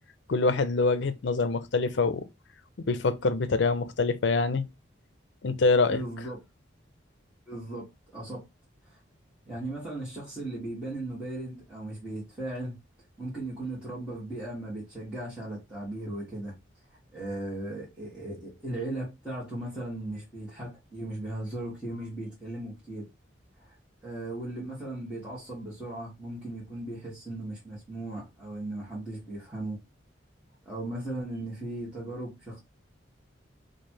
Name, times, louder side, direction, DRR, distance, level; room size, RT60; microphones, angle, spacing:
voice 1, 0.3-2.2 2.8-4.7 5.4-6.0, left 3 dB, 65° left, 0.5 m, -25 dB
voice 2, 5.8-6.4 7.5-8.4 8.9-9.0 9.4-12.8 13.2-16.5 17.1-23.1 23.6-23.7 24.0-29.8 30.6-32.6, right 1 dB, 5° right, 1.5 m, -37 dB
3.1 x 2.6 x 4.4 m
head